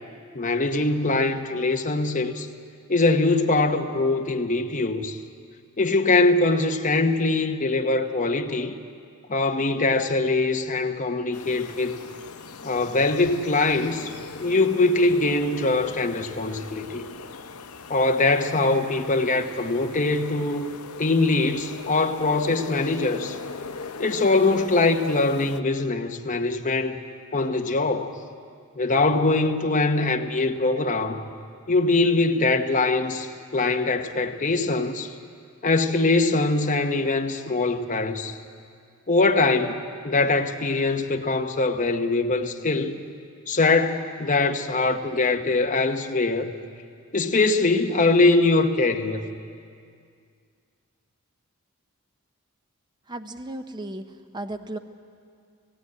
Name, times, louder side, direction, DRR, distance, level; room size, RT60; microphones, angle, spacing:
voice 1, 0.3-2.5 2.9-5.2 5.8-8.7 9.3-12.0 12.6-14.2 14.4-17.1 17.9-23.4 24.0-27.0 27.3-28.1 28.7-31.3 31.7-35.1 35.6-38.4 39.1-39.8 40.0-43.0 43.5-46.5 47.1-49.3, left 3 dB, 35° left, 1.0 m, -22 dB
sound 1, 11.3-25.6, left 4 dB, 90° left, 0.8 m, -39 dB
voice 2, 53.1-54.1 54.3-54.8, right 1 dB, 20° right, 0.6 m, -34 dB
17.5 x 16.5 x 9.6 m
head